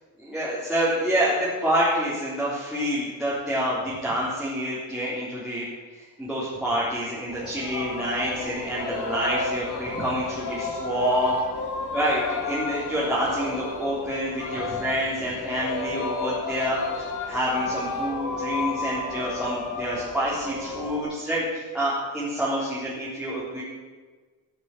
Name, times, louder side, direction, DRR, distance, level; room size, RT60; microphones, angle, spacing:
voice 1, 0.2-5.6 6.2-11.4 11.9-16.8 17.3-21.4 21.7-23.6, equal, ahead, -10 dB, 3.5 m, -27 dB
Singing, 7.3-21.0, left 3 dB, 60° left, 2.2 m, -32 dB
14.5 x 8.1 x 8.4 m, 1.4 s
cardioid pair, 175°, 34 cm